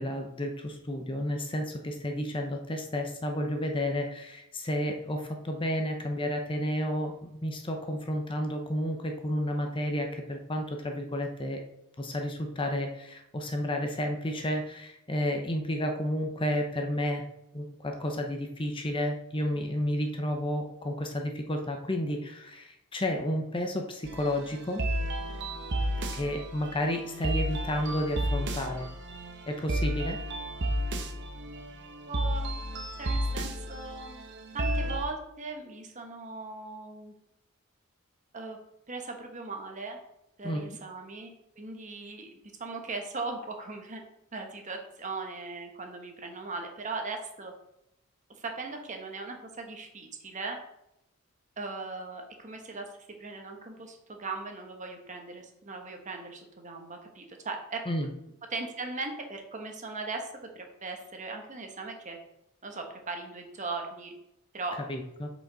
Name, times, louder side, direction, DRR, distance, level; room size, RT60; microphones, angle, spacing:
voice 1, 0.0-11.6 12.0-17.2 17.5-24.8 26.1-28.9 29.5-30.2 40.4-40.8 57.9-58.1 64.9-65.3, left 1 dB, 25° left, 3 dB, 0.8 m, -31 dB
sound 1, 24.0-35.0, right 1 dB, 55° right, 0.9 m, -32 dB
voice 2, 32.1-32.6 33.0-34.2 34.5-37.1 38.3-38.6 38.9-40.0 40.4-44.0 44.3-47.5 48.4-50.6 51.6-52.9 53.2-57.8 58.5-60.3 60.5-62.2 62.6-64.1 64.5-64.8, right 3 dB, 35° right, 3 dB, 1.2 m, -38 dB
8.2 x 5.2 x 3.9 m, 0.84 s
head